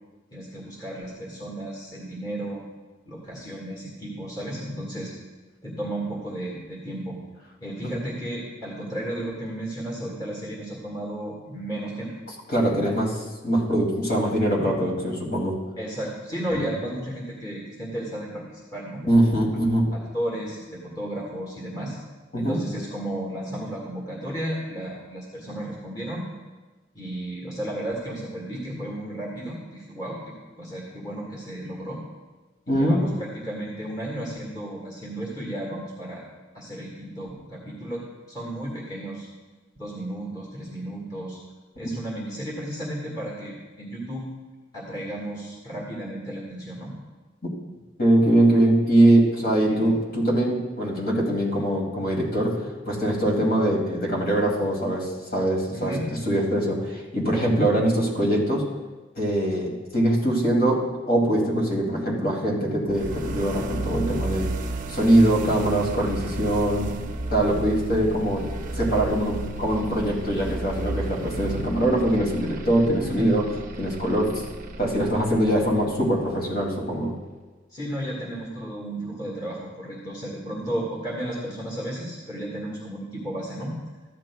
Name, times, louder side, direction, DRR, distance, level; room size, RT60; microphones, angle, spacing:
voice 1, 0.3-2.6 3.1-5.1 5.6-7.2 7.6-12.1 12.8-13.0 15.8-19.0 19.9-22.0 22.4-26.3 26.9-32.0 32.7-36.3 36.5-39.3 39.8-41.4 41.8-44.3 44.7-46.9 49.7-49.9 55.7-56.0 73.0-73.3 77.7-83.7, right 1 dB, 20° left, -4 dB, 1.7 m, -33 dB
voice 2, 12.5-13.1 13.4-15.5 16.5-16.6 19.1-19.9 22.3-22.6 32.7-33.0 47.4-47.5 48.0-55.9 56.3-58.6 59.1-60.8 61.1-64.5 64.9-66.9 67.3-68.5 68.7-73.4 73.8-74.4 74.8-77.1, right 1 dB, 50° left, -3 dB, 2.5 m, -22 dB
sound 1, 62.9-76.8, right 2 dB, 45° right, 0.6 m, -33 dB
14.5 x 10.5 x 2.3 m, 1.2 s
head